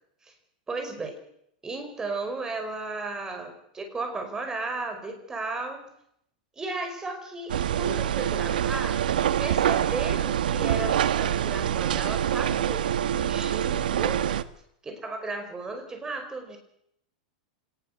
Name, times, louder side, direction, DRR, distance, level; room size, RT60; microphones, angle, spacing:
voice 1, 0.7-1.1 1.6-5.9 6.5-9.1 9.4-14.2 14.8-16.6, right 3 dB, 15° right, 5 dB, 5.2 m, -35 dB
sound 1, 7.5-14.4, right 10 dB, 90° right, 1.2 m, -25 dB
26.0 x 19.5 x 6.7 m, 0.73 s
supercardioid pair, 145°, 5 cm